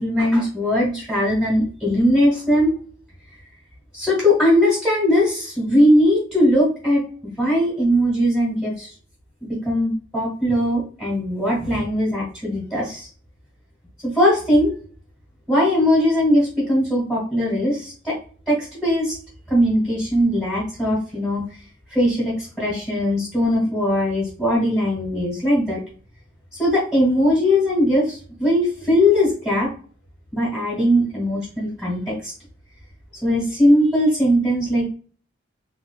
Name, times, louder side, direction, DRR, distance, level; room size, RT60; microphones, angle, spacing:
voice 1, 0.0-2.7 3.9-8.9 9.4-13.1 14.0-14.7 15.5-18.1 18.5-19.2 19.5-21.4 21.9-25.8 26.6-29.7 30.3-32.3 33.2-34.9, equal, ahead, -6 dB, 1.5 m, -20 dB
3.4 x 3.1 x 2.3 m, 0.41 s
head